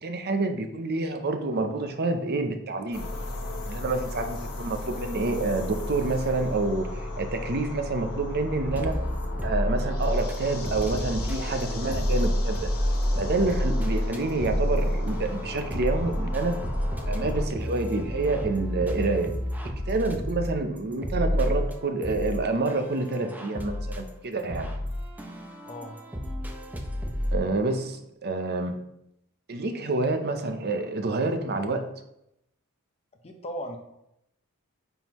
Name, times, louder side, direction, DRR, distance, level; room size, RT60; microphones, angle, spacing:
voice 1, 0.0-3.1 3.7-9.0 9.4-12.7 13.2-16.5 17.1-19.3 19.9-24.7 27.3-28.8 29.5-31.8, right 3 dB, 45° right, 6 dB, 0.7 m, -28 dB
sound 1, 2.9-17.5, left 1 dB, 80° left, 1.1 m, -34 dB
sound 2, 8.7-10.4 10.7-27.4, equal, 10° right, 0.6 m, -30 dB
voice 2, 25.7-26.0 33.2-33.8, equal, 30° left, 3 dB, 0.8 m, -36 dB
9.3 x 3.8 x 3.0 m, 0.82 s
head